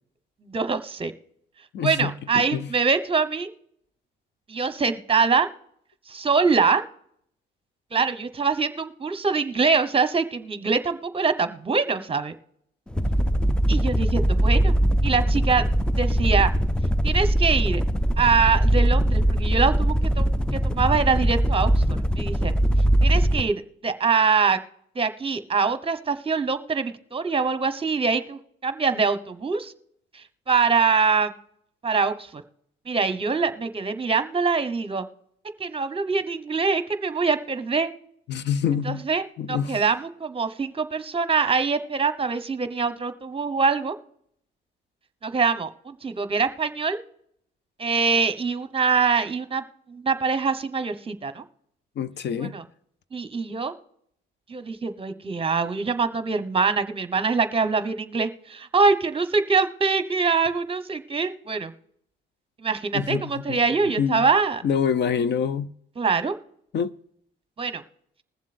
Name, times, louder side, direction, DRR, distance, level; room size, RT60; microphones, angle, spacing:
voice 1, 0.4-1.1 1.8-3.5 4.5-5.5 6.1-6.8 7.9-12.3 13.7-14.7 15.0-15.6 16.0-16.5 17.0-17.8 18.2-21.8 22.2-22.5 23.0-24.6 24.9-29.7 30.1-31.3 31.8-32.4 32.9-35.0 35.6-37.9 38.8-43.9 45.2-47.0 47.8-51.4 52.4-52.6 53.1-53.7 54.5-61.7 62.6-64.6 66.0-66.3 67.6-67.8, right 5 dB, 30° right, 1.0 m, -24 dB
voice 2, 1.7-2.7 38.3-39.0 39.4-39.8 52.0-52.6 62.9-63.6 64.0-64.3 64.6-65.7 66.7-66.9, left 7 dB, 60° left, 0.6 m, -26 dB
sound 1, 12.9-23.5, right 1 dB, 5° left, 0.4 m, -21 dB
21.0 x 7.4 x 2.5 m
cardioid pair, 90°, 20 cm